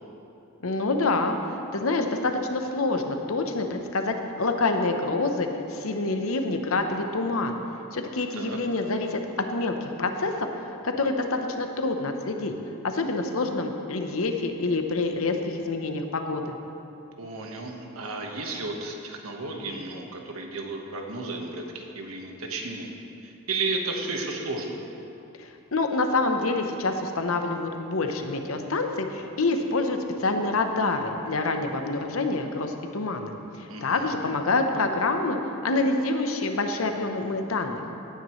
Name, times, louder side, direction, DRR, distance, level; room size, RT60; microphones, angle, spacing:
voice 1, 0.6-1.4 1.7-7.6 7.9-9.2 9.5-10.5 10.8-12.5 12.8-16.5 25.4-33.3 33.6-37.8, left 3 dB, 80° left, 5 dB, 0.9 m, -27 dB
voice 2, 17.2-22.9 23.2-24.8 33.7-34.1, right 3 dB, 85° right, 1 dB, 1.4 m, -33 dB
17.0 x 9.3 x 3.2 m, 2.9 s
head